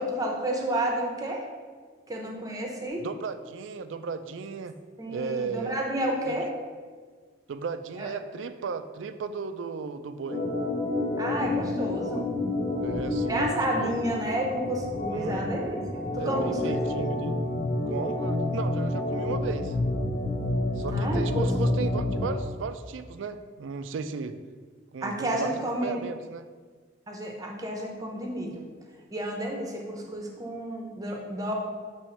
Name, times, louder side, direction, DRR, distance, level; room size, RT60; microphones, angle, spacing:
voice 1, 0.0-1.4 2.1-3.1 5.0-6.5 8.0-8.1 11.2-12.2 13.3-16.8 20.9-21.5 25.0-26.0 27.1-28.6 29.1-31.5, right 1 dB, 20° right, 0 dB, 0.8 m, -31 dB
voice 2, 3.0-4.7 5.1-5.7 6.3-6.4 7.5-10.4 12.8-14.1 15.1-15.5 16.1-17.4 17.9-19.8 20.8-24.4 24.9-26.5, right 5 dB, 75° right, 10 dB, 0.4 m, -35 dB
Organ, 10.2-22.4, left 2 dB, 40° left, 1.0 m, -29 dB
7.1 x 3.1 x 4.3 m, 1.5 s
head